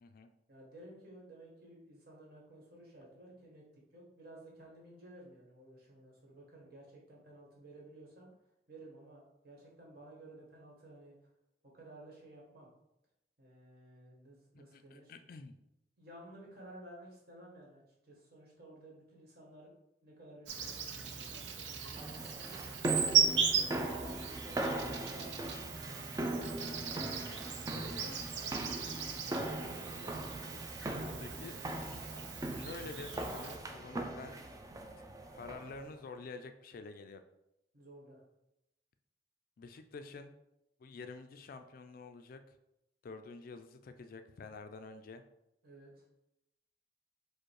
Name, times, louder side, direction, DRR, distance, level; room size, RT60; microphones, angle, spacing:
voice 1, 0.5-3.7 3.9-8.3 8.7-11.2 11.7-12.7 13.4-15.1 16.0-19.7 20.0-22.7 23.5-25.4 25.9-27.0 27.5-31.5 37.7-38.2 45.6-45.9, right 1 dB, 60° right, -3 dB, 1.5 m, -54 dB
voice 2, 14.5-15.6 23.7-24.0 31.2-32.2 32.5-34.4 35.3-37.2 39.6-40.3 40.8-42.6 43.0-45.2, left 3 dB, 55° left, 8 dB, 0.3 m, -48 dB
Insect, 20.5-33.6, right 7 dB, 85° right, 0.5 m, -37 dB
sound 1, 21.9-35.8, right 1 dB, 20° right, 0.4 m, -40 dB
4.9 x 2.1 x 4.7 m, 0.87 s
head